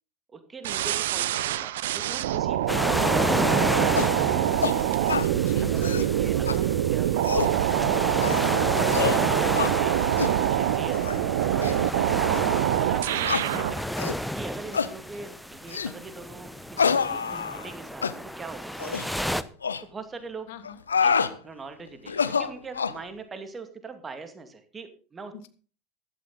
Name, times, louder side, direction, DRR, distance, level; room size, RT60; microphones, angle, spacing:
voice 1, 0.3-4.4 4.7-5.1 5.6-8.1 8.5-11.1 11.4-12.2 12.8-13.9 14.3-19.4 19.8-20.5 21.0-21.1 21.4-25.3, right 4 dB, 20° right, 8 dB, 2.4 m, -42 dB
sound 1, 0.6-13.8, right 12 dB, 65° right, 0.7 m, -25 dB
sound 2, 2.7-19.4, equal, ahead, 0.9 m, -31 dB
sound 3, 4.0-4.2 4.6-4.8 5.1-5.3 5.7-6.1 6.5-6.6 7.1-7.6 8.2-8.5 8.9-9.2 9.5-9.7 10.2-10.4 10.9-11.2 11.6-11.7 12.3-12.4 13.2-13.5 14.0-14.2 14.7-14.9 15.7-16.0 16.8-17.7 18.0-18.2 18.8-19.1 19.6-19.8 20.6-21.3 22.1-23.0, left 6 dB, 80° left, 0.8 m, -26 dB
voice 2, 5.3-6.0 13.1-13.5 20.5-20.8 25.3-25.5, left 9 dB, 60° left, 12 dB, 1.5 m, -42 dB
15.0 x 12.0 x 4.0 m, 0.38 s
figure-of-eight pair, 75°, 0 cm